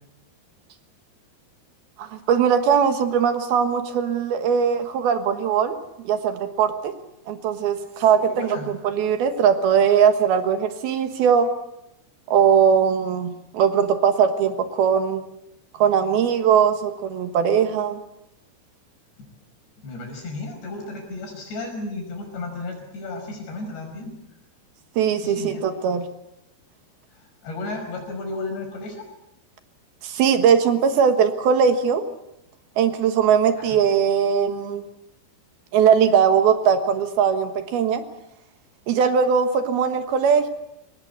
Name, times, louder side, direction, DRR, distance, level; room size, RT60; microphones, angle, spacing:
voice 1, 2.0-5.8 6.0-6.9 7.3-11.5 12.3-15.2 15.8-18.0 25.0-26.1 30.0-32.0 32.8-34.8 35.7-38.0 38.9-40.5, right 7 dB, 70° right, 8 dB, 3.2 m, -20 dB
voice 2, 8.1-8.7 19.8-24.1 25.2-25.6 27.1-29.0 33.6-33.8, left 2 dB, 80° left, 3 dB, 7.7 m, -33 dB
24.0 x 19.0 x 8.2 m, 0.86 s
omnidirectional pair, 4.8 m